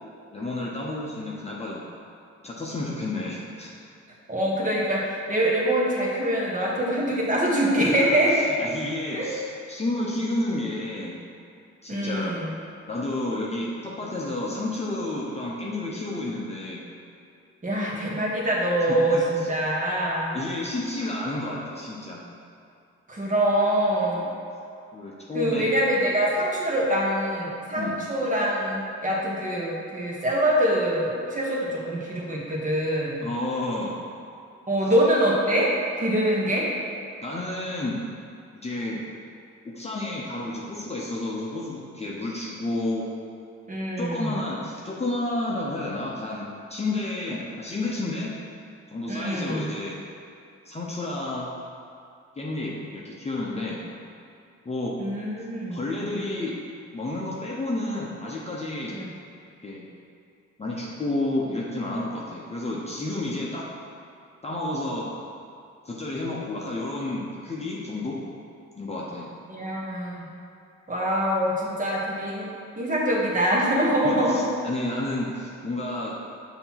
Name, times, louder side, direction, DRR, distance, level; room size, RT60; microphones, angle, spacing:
voice 1, 0.3-1.8 2.4-3.7 7.8-8.2 8.6-11.2 11.8-12.4 12.9-16.8 18.9-19.2 20.3-22.2 24.2-24.3 24.9-25.7 27.7-27.9 33.2-33.9 37.2-38.0 38.6-39.0 39.6-43.1 44.0-48.3 48.9-50.0 50.7-51.5 52.4-53.8 54.6-54.9 55.7-56.6 56.9-59.0 59.6-59.8 60.6-63.7 64.4-65.1 65.8-68.2 68.8-69.3 74.0-76.1, left 2 dB, 20° left, -5 dB, 0.9 m, -31 dB
voice 2, 4.3-8.3 9.1-9.3 11.9-12.5 17.6-20.4 23.1-24.3 25.3-33.2 34.7-35.7 36.0-36.7 43.7-44.4 49.1-49.7 55.0-55.8 58.9-59.1 69.5-70.3 70.9-72.4 72.8-74.4, right 1 dB, 25° right, -4 dB, 1.5 m, -24 dB
6.7 x 3.0 x 5.8 m, 2.5 s
cardioid pair, 90°, 30 cm